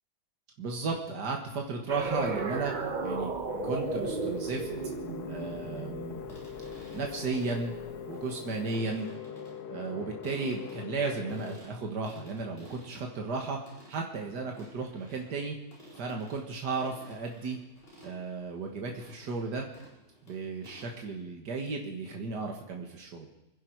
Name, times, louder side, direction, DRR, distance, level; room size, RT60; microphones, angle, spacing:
voice 1, 0.6-2.7 3.0-3.3 3.6-4.7 5.3-6.2 6.9-7.7 8.1-9.1 9.7-13.6 13.9-15.6 16.0-17.6 18.0-19.7 20.2-23.3, right 4 dB, 85° right, 1 dB, 2.2 m, -34 dB
sound 1, 1.9-7.2, right 3 dB, 35° right, 1.0 m, -34 dB
sound 2, 3.5-11.6, left 8 dB, 75° left, 1.4 m, -42 dB
sound 3, 6.0-21.2, equal, 35° left, 5.2 m, -54 dB
25.0 x 10.5 x 4.7 m, 0.99 s
omnidirectional pair, 1.7 m